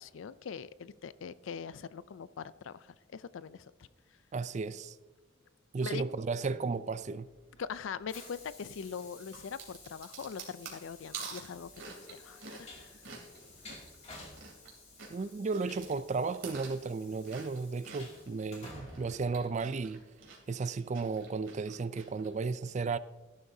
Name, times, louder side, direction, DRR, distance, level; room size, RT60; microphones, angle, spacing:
voice 1, 0.0-3.7 5.8-6.0 7.6-12.7, left 6 dB, 75° left, 0.4 m, -42 dB
voice 2, 4.3-5.0 5.7-7.3 15.1-20.0 20.5-23.0, right 4 dB, 40° right, 0.4 m, -34 dB
Train, 7.1-20.1, left 2 dB, 35° left, 2.5 m, -53 dB
sound 1, 9.2-14.7 15.0-18.3 18.7-22.3, right 5 dB, 70° right, 2.8 m, -48 dB
14.0 x 11.5 x 2.7 m
head